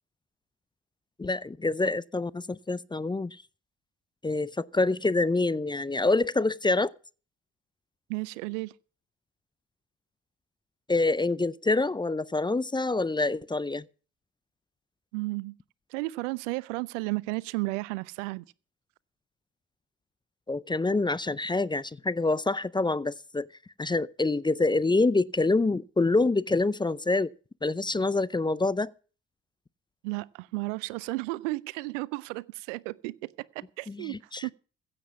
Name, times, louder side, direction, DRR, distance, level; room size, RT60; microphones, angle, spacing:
voice 1, 1.2-3.4 4.2-6.9 10.9-13.8 20.5-23.5 23.8-27.3 27.6-28.9 33.9-34.5, left 3 dB, 10° left, 0.5 m, -26 dB
voice 2, 8.1-8.7 15.1-15.5 15.9-18.4 30.0-34.1 34.4-34.5, right 23 dB, 75° right, 0.5 m, -33 dB
16.0 x 7.5 x 6.0 m
figure-of-eight pair, 40°, 37 cm